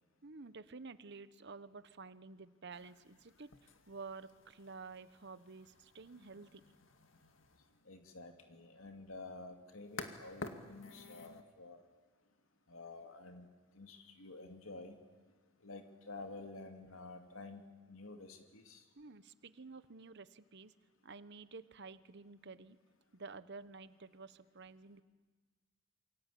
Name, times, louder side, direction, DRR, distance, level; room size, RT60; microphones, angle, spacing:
voice 1, 0.2-6.6 19.0-20.7 21.0-22.8 23.1-25.0, right 4 dB, 60° right, 14 dB, 1.1 m, -51 dB
sound 1, 2.7-11.4, left 3 dB, 65° left, 2.1 m, -52 dB
voice 2, 7.9-11.8 12.7-13.5 13.7-15.0 15.6-18.8, left 3 dB, 90° left, 5 dB, 2.7 m, -50 dB
28.5 x 24.0 x 8.5 m, 1.3 s
head